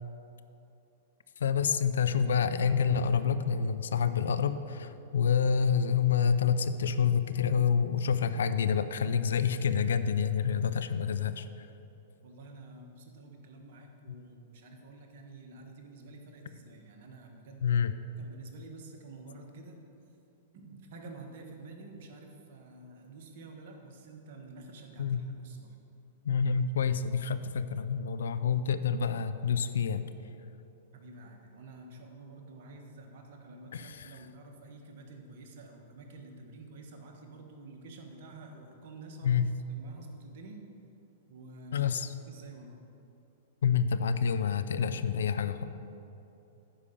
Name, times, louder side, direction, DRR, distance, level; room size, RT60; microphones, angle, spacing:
voice 1, 1.4-11.5 14.1-14.2 17.6-17.9 25.0-25.3 26.3-30.1 33.7-34.2 39.2-39.5 41.7-42.1 43.6-45.7, left 7 dB, 70° left, 12 dB, 0.4 m, -28 dB
voice 2, 12.2-17.8 18.2-19.8 20.5-25.7 30.9-39.4 39.7-40.6 41.3-41.9 42.3-42.8, right 2 dB, 55° right, 2 dB, 1.4 m, -49 dB
10.0 x 5.0 x 6.9 m, 2.9 s
hypercardioid pair, 105°, 0 cm